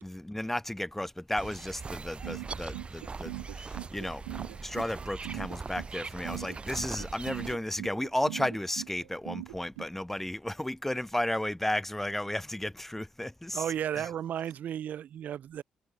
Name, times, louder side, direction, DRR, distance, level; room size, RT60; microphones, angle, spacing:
voice 1, 0.0-4.2 4.6-13.6 13.9-14.1, left 1 dB, 10° left, 1.8 m, -33 dB
sound 1, 1.4-7.6, right 4 dB, 35° right, 1.2 m, -41 dB
sound 2, 2.2-9.9, right 27 dB, 85° right, 0.9 m, -40 dB
voice 2, 13.5-15.6, right 10 dB, 65° right, 1.2 m, -34 dB
hypercardioid pair, 45°, 3 cm